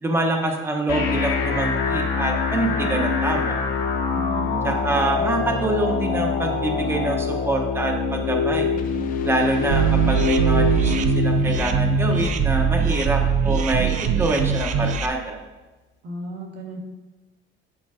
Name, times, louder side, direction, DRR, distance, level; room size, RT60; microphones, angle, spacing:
voice 1, 0.0-3.6 4.6-8.7 9.2-15.4, right 2 dB, 10° right, 2 dB, 0.9 m, -25 dB
sound 1, 0.9-14.9, left 5 dB, 65° left, 1.8 m, -26 dB
voice 2, 4.1-4.8 5.2-5.4 16.0-16.8, right 2 dB, 55° right, 1 dB, 1.7 m, -34 dB
sound 2, 8.8-11.7, left 7 dB, 45° left, 0.5 m, -38 dB
sound 3, 9.7-15.1, right 7 dB, 40° right, 0.5 m, -21 dB
8.8 x 4.6 x 5.0 m, 1.2 s
cardioid pair, 165°, 20 cm